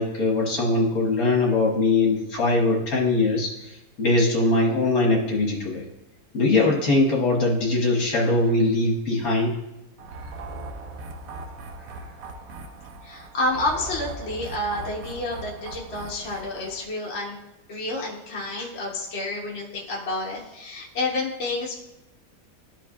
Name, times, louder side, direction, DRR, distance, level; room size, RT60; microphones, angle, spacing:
voice 1, 0.0-3.5 4.0-5.8 6.3-9.5, left 2 dB, 60° left, -3 dB, 1.8 m, -21 dB
sound 1, 10.0-16.8, right 2 dB, 65° right, 1.0 m, -39 dB
voice 2, 13.0-17.4 17.7-21.7, left 2 dB, 45° left, -4 dB, 1.2 m, -29 dB
12.5 x 4.6 x 2.4 m, 0.95 s
omnidirectional pair, 1.8 m